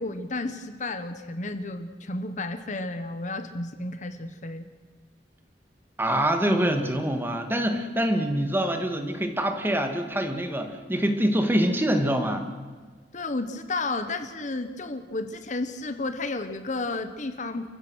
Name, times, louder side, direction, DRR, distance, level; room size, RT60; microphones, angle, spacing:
voice 1, 0.0-4.7 13.1-17.7, left 2 dB, 45° left, 9 dB, 1.2 m, -32 dB
voice 2, 6.0-12.4, right 1 dB, 10° right, 6 dB, 2.0 m, -25 dB
30.0 x 15.5 x 6.4 m, 1.5 s
head